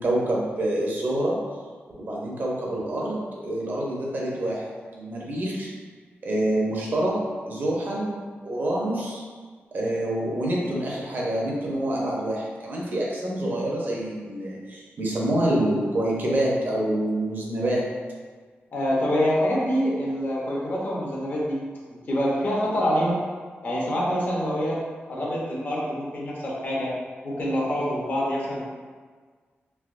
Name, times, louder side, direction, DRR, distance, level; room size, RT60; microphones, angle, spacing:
voice 1, 0.0-1.4 2.0-4.6 4.9-5.7 6.2-9.2 9.7-18.0, right 1 dB, 50° right, -3 dB, 0.6 m, -26 dB
voice 2, 18.7-21.6 21.9-23.2 23.6-24.8 25.1-26.9 27.2-28.7, equal, 50° left, -5 dB, 0.8 m, -26 dB
3.3 x 2.8 x 2.5 m, 1.5 s
wide cardioid pair, 170°, 4 cm